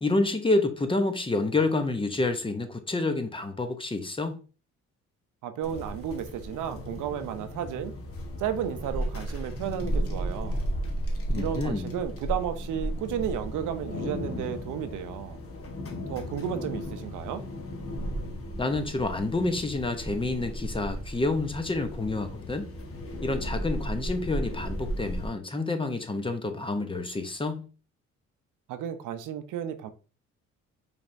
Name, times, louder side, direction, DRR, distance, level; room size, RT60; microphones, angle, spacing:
voice 1, 0.0-4.4 11.3-11.9 18.6-22.7 23.2-27.7, left 2 dB, 15° left, 0.7 m, -28 dB
voice 2, 5.4-7.9 8.4-10.6 11.3-15.4 16.1-17.4 28.7-29.9, right 9 dB, 85° right, 0.6 m, -33 dB
sound 1, 5.6-25.3, equal, 50° left, 1.2 m, -34 dB
5.0 x 3.4 x 2.6 m
cardioid pair, 90°, 30 cm